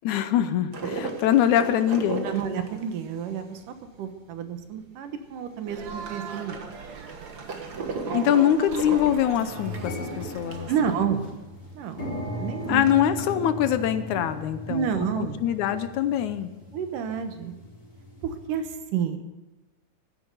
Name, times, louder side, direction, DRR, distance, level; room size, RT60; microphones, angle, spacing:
voice 1, 0.0-2.3 8.1-10.7 12.7-16.5, left 10 dB, 75° left, 11 dB, 2.1 m, -24 dB
sound 1, 0.7-4.7 5.1-5.2 5.4-10.7 11.1-11.2 11.4-11.5 12.0-13.3, right 4 dB, 40° right, 1.5 m, -36 dB
voice 2, 2.2-3.6 4.0-6.6 10.7-11.3 11.7-12.8 14.7-15.4 16.7-17.5 18.2-19.2, right 7 dB, 85° right, 8 dB, 2.8 m, -30 dB
sound 2, 5.7-11.0, right 6 dB, 65° right, 2.6 m, -39 dB
sound 3, 6.9-7.0 7.8-8.0 8.4-8.5 8.8-18.5, left 1 dB, 25° left, 5.0 m, -38 dB
14.5 x 9.9 x 7.9 m, 1.1 s
omnidirectional pair, 3.6 m